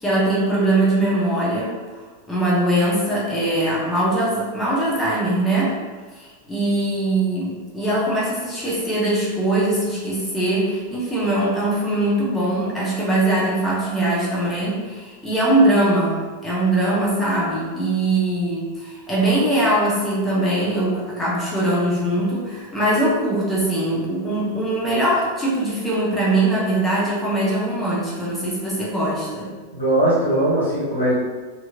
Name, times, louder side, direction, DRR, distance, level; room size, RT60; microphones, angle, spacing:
voice 1, 0.0-2.0 2.3-5.8 6.1-29.5, right 1 dB, 10° left, -8 dB, 0.9 m, -21 dB
voice 2, 29.7-31.1, right 1 dB, 85° left, -9 dB, 1.2 m, -19 dB
3.0 x 2.8 x 2.4 m, 1.3 s
figure-of-eight pair, 90°, 0 cm